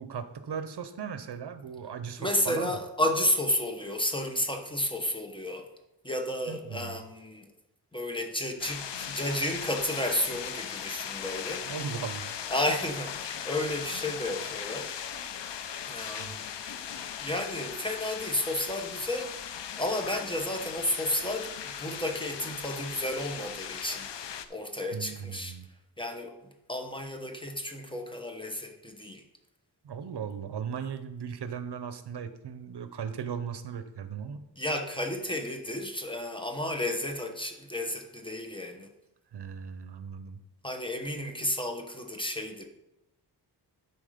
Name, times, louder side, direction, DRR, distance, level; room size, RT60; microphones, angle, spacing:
voice 1, 0.0-2.7 6.5-7.0 11.6-12.3 16.2-16.4 24.9-25.7 29.8-34.5 39.3-40.4, right 7 dB, 70° right, 11 dB, 0.8 m, -37 dB
voice 2, 2.2-5.7 6.0-7.5 7.9-11.7 12.5-15.0 15.9-16.5 16.9-19.4 19.8-24.1 24.5-25.6 26.0-26.4 26.7-29.2 34.6-38.9 40.6-42.7, left 1 dB, 10° left, 4 dB, 1.0 m, -32 dB
sound 1, 8.6-24.5, left 8 dB, 90° left, 0.6 m, -38 dB
11.5 x 4.4 x 5.0 m, 0.90 s
wide cardioid pair, 120°, 41 cm